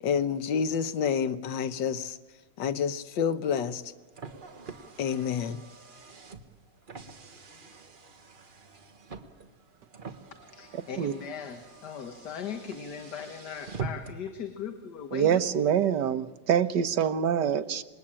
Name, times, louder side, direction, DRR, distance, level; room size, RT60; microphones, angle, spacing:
voice 1, 0.0-2.2 2.6-3.8 5.0-5.6, left 7 dB, 85° left, 11 dB, 1.7 m, -28 dB
Car, 3.7-14.3, right 4 dB, 30° right, 1.4 m, -44 dB
voice 2, 10.5-15.4, left 7 dB, 65° left, 7 dB, 1.9 m, -38 dB
voice 3, 15.1-17.8, right 8 dB, 70° right, 11 dB, 1.6 m, -25 dB
27.0 x 20.5 x 8.8 m, 1.2 s
omnidirectional pair, 1.9 m